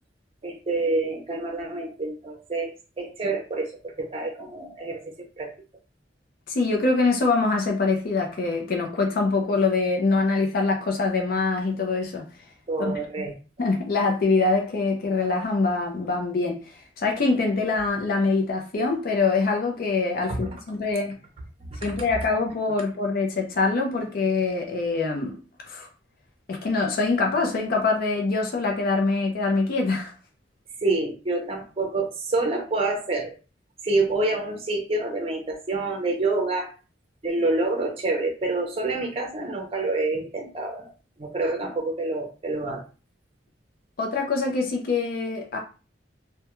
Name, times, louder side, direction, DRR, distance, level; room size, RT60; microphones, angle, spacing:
voice 1, 0.4-5.5 12.7-13.3 20.3-20.5 30.8-33.4 33.8-36.7 37.2-40.9 41.2-42.8, right 2 dB, 35° right, 0.5 m, -27 dB
voice 2, 6.5-12.2 12.8-12.9 13.6-21.2 21.8-25.4 25.6-25.9 26.5-30.1 44.0-45.6, left 3 dB, 55° left, 0.5 m, -24 dB
2.2 x 2.1 x 2.9 m
head